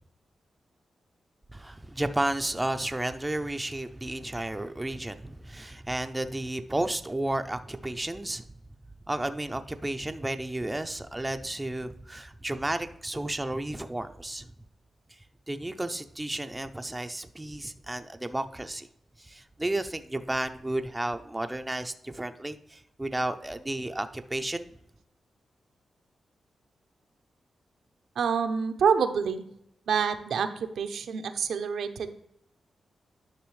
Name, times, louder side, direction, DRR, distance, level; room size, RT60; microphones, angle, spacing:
voice 1, 1.5-8.5 9.1-14.5 15.5-18.9 19.2-24.7, right 1 dB, 10° right, 0.5 m, -32 dB
voice 2, 28.2-29.4 29.9-32.1, right 6 dB, 80° right, 0.6 m, -27 dB
10.0 x 5.9 x 3.2 m
cardioid pair, 90°, 0 cm